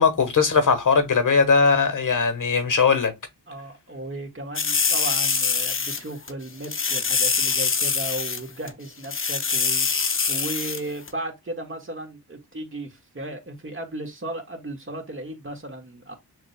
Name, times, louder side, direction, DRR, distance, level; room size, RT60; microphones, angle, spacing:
voice 1, 0.0-3.1, left 5 dB, 50° left, 1.3 m, -19 dB
voice 2, 3.5-16.1, right 1 dB, 30° right, 1.7 m, -35 dB
sound 1, 4.6-6.0 6.3-6.4 6.6-8.4 8.7-8.8 9.0-10.8 11.1-11.2, left 5 dB, 35° left, 0.7 m, -24 dB
6.5 x 2.6 x 2.2 m
cardioid pair, 55°, 39 cm